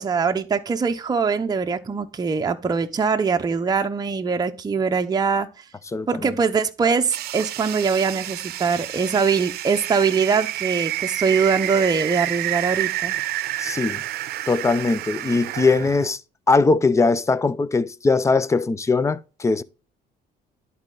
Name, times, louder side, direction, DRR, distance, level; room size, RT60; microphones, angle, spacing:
voice 1, 0.0-5.5 6.1-13.2, right 5 dB, 25° right, 0.7 m, -22 dB
voice 2, 5.9-6.3 13.6-14.0 14.5-16.2 16.5-19.6, left 3 dB, 15° left, 0.5 m, -20 dB
sound 1, 7.1-16.1, right 14 dB, 70° right, 0.6 m, -29 dB
11.0 x 4.2 x 3.8 m
cardioid pair, 110°, 17 cm